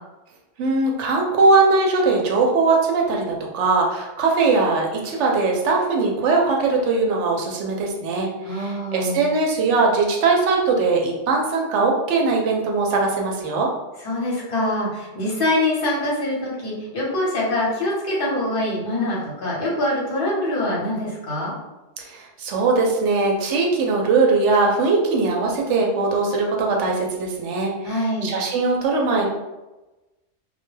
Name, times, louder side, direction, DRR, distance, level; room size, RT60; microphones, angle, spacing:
voice 1, 0.6-13.7 22.0-29.3, right 3 dB, 90° right, 0 dB, 0.9 m, -20 dB
voice 2, 8.4-9.2 14.0-21.5 27.8-28.3, left 1 dB, 55° left, -5 dB, 1.0 m, -24 dB
2.3 x 2.1 x 3.1 m, 1.1 s
omnidirectional pair, 1.2 m